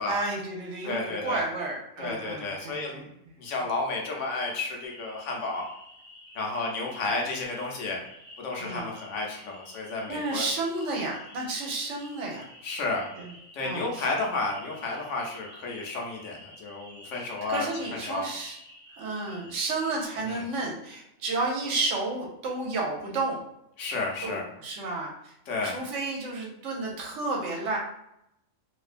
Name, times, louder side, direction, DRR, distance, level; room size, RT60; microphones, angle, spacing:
voice 1, 0.0-3.1 8.6-8.9 10.1-12.5 13.2-13.3 13.6-14.1 17.1-17.2 17.5-18.6 18.9-23.4 24.2-25.3 25.6-27.8, right 2 dB, 70° right, -1 dB, 0.9 m, -31 dB
voice 2, 0.8-1.4 2.0-3.0 3.4-5.6 6.3-8.0 8.4-10.5 12.6-13.1 13.5-18.3 20.2-20.5 23.8-24.5 25.5-25.8, left 3 dB, 70° left, 0 dB, 0.9 m, -32 dB
sound 1, 4.8-20.0, left 1 dB, 30° right, 0.8 m, -51 dB
2.5 x 2.2 x 2.4 m, 0.80 s
omnidirectional pair, 1.4 m